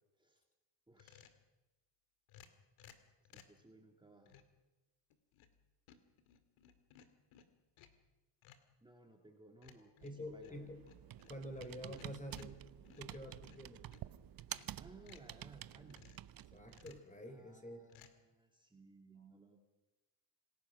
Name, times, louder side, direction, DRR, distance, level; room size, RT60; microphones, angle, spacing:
voice 1, 0.9-1.3 3.3-4.4 8.8-10.6 14.8-16.2 17.2-19.6, right 2 dB, 10° right, 2 dB, 2.8 m, -60 dB
sound 1, 1.0-1.5 2.3-3.6 4.3-4.6 5.1-5.6 5.9-8.1 8.4-8.7 9.6-14.1 14.4-15.3 15.9-16.3 16.7-17.1 17.9-18.1, left 8 dB, 85° left, 2.4 m, -62 dB
voice 2, 10.0-10.8 11.3-12.6 13.0-13.9 16.5-17.9, equal, 15° left, 7 dB, 3.6 m, -48 dB
Computer keyboard, 10.0-17.0, right 12 dB, 45° right, 0.8 m, -51 dB
27.0 x 16.5 x 6.3 m, 1.1 s
cardioid pair, 110°, 47 cm